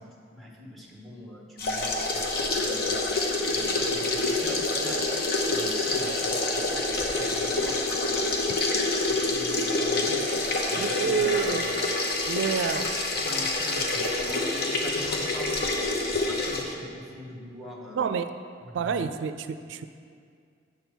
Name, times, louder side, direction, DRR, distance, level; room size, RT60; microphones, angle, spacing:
voice 1, 0.0-3.0 3.5-5.1 5.5-8.5 9.0-10.2 10.7-11.8 13.2-18.1 18.6-19.1, left 1 dB, ahead, -2 dB, 1.1 m, -43 dB
sound 1, 1.6-16.6, left 2 dB, 60° left, 0.9 m, -27 dB
voice 2, 10.8-11.6 12.3-12.9 17.9-18.3 18.7-19.9, right 6 dB, 90° right, 10 dB, 0.3 m, -28 dB
8.1 x 4.4 x 6.8 m, 2.2 s
head